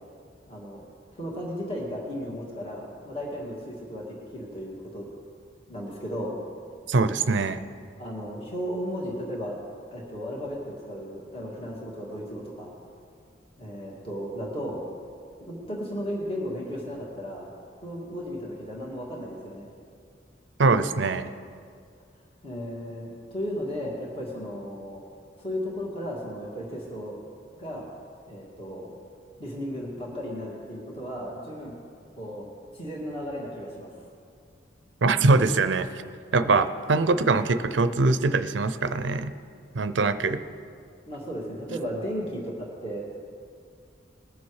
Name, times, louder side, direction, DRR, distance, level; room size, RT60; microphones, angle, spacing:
voice 1, 0.5-0.8 1.1-5.1 5.7-6.4 8.0-9.6 9.9-12.7 13.6-14.8 15.4-17.5 17.8-19.7 22.4-25.0 25.4-27.2 27.6-27.9 28.3-29.0 29.4-31.7 32.2-34.0 41.1-43.2, equal, 30° left, -3 dB, 2.1 m, -35 dB
voice 2, 6.9-7.6 20.6-21.3 35.0-35.9 36.3-39.3 39.7-40.4, right 3 dB, 85° right, 12 dB, 0.6 m, -22 dB
21.0 x 7.1 x 4.8 m, 2.2 s
head